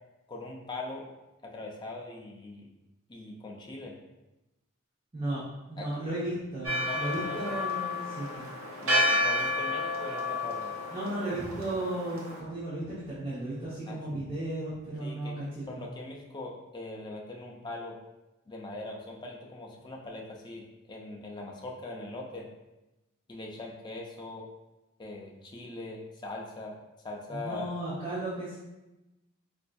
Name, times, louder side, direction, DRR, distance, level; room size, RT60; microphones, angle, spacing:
voice 1, 0.3-1.1 1.4-2.7 3.1-4.0 5.8-6.1 6.8-7.6 8.8-10.7 13.9-14.0 15.0-15.4 15.7-18.0 18.5-22.5 23.3-24.5 25.0-26.8 27.0-27.7, left 2 dB, 20° left, -1 dB, 0.4 m, -41 dB
voice 2, 5.1-8.5 10.9-15.8 27.3-28.6, right 1 dB, 25° right, -10 dB, 0.7 m, -35 dB
Church bell, 6.6-12.4, left 1 dB, 80° right, 0.7 m, -31 dB
4.2 x 2.5 x 2.2 m, 1.0 s
head